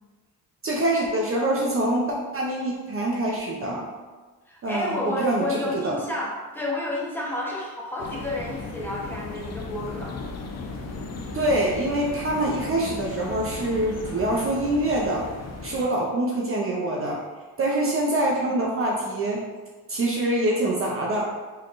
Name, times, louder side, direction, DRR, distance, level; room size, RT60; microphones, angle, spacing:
voice 1, 0.6-3.9 4.6-6.0 11.3-15.2 15.6-17.2 17.6-19.5 19.9-21.3, right 1 dB, 35° right, -2 dB, 0.6 m, -25 dB
voice 2, 4.5-10.1, left 2 dB, 5° left, -5 dB, 0.9 m, -30 dB
sound 1, 8.0-15.9, left 3 dB, 40° left, 0.6 m, -36 dB
3.9 x 3.2 x 2.5 m, 1.3 s
cardioid pair, 90°, 38 cm